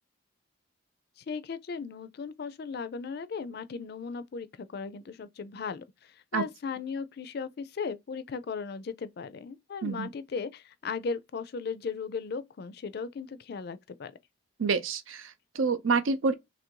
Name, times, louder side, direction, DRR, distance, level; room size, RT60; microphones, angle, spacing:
voice 1, 1.2-14.1, left 5 dB, 50° left, 0.4 m, -37 dB
voice 2, 14.6-16.3, right 4 dB, 80° right, 0.5 m, -28 dB
3.0 x 2.6 x 4.4 m
head